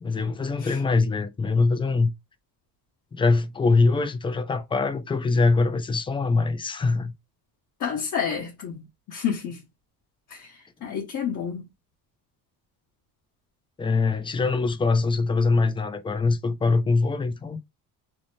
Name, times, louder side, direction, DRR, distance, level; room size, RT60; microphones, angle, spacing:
voice 1, 0.0-2.1 3.1-7.1 13.8-17.6, left 3 dB, 15° left, 0.3 m, -23 dB
voice 2, 7.8-8.8 9.1-9.6 10.3-10.5 10.8-11.6, left 7 dB, 50° left, 0.9 m, -29 dB
2.7 x 2.0 x 3.1 m
cardioid pair, 120°, 40 cm